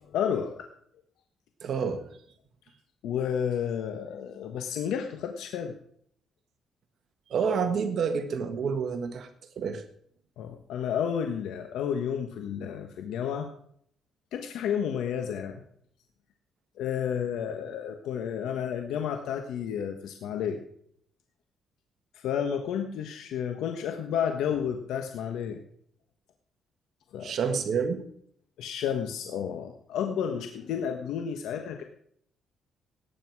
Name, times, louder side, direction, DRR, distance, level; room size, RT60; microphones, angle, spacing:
voice 1, 0.1-0.7 3.0-5.8 10.4-13.5 14.3-15.6 16.8-20.6 22.1-25.6 27.1-27.3 28.6-31.8, left 8 dB, 85° left, 5 dB, 1.3 m, -31 dB
voice 2, 1.6-2.1 7.3-9.3 9.5-9.8 27.2-28.0, right 6 dB, 60° right, 8 dB, 1.5 m, -28 dB
18.5 x 9.4 x 4.8 m, 0.66 s
cardioid pair, 90°, 0 cm